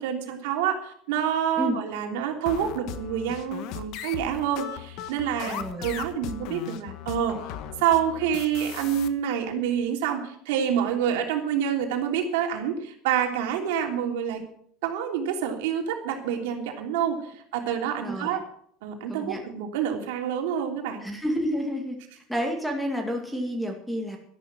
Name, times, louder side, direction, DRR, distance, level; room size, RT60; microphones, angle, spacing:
voice 1, 0.0-7.4 7.8-14.4 14.8-18.4 18.8-21.0, right 9 dB, 90° right, 3 dB, 3.2 m, -27 dB
sound 1, 2.5-9.1, left 10 dB, 50° left, 1.2 m, -37 dB
voice 2, 5.4-5.9 18.0-18.3 19.1-19.4 21.0-22.0 22.3-24.2, equal, ahead, 3 dB, 2.1 m, -29 dB
13.0 x 11.5 x 6.1 m, 0.64 s
cardioid pair, 175°, 0 cm